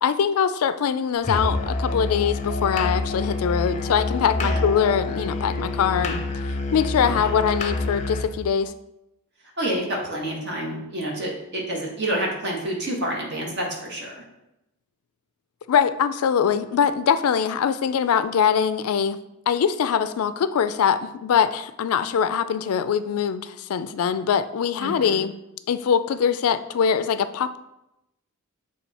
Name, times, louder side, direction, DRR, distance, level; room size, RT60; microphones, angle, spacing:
voice 1, 0.0-6.2 6.7-8.7 15.7-19.2 19.5-25.3 25.7-27.6, left 7 dB, 75° left, 12 dB, 0.3 m, -22 dB
Musical instrument, 1.2-8.4, left 2 dB, 30° left, 0.6 m, -27 dB
voice 2, 9.6-14.2 24.8-25.2, right 1 dB, 50° right, -1 dB, 1.5 m, -28 dB
7.0 x 3.2 x 4.1 m, 0.89 s
head